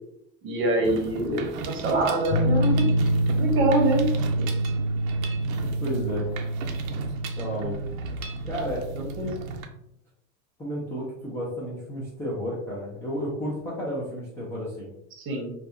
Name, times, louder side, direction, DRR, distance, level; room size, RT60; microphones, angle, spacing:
voice 1, 0.4-2.9 3.4-4.1 4.4-4.5 8.9-9.3 15.2-15.5, right 1 dB, 30° right, 1 dB, 0.8 m, -25 dB
Mechanisms, 0.8-9.7, right 4 dB, 90° right, 0.6 m, -37 dB
sound 1, 2.3-9.5, right 1 dB, 90° left, 0.6 m, -26 dB
voice 2, 5.5-6.3 7.4-7.7 8.4-8.9 9.2-9.3 10.6-14.9, equal, 5° left, -8 dB, 0.3 m, -32 dB
2.6 x 2.3 x 2.4 m, 0.76 s
supercardioid pair, 130°, 39 cm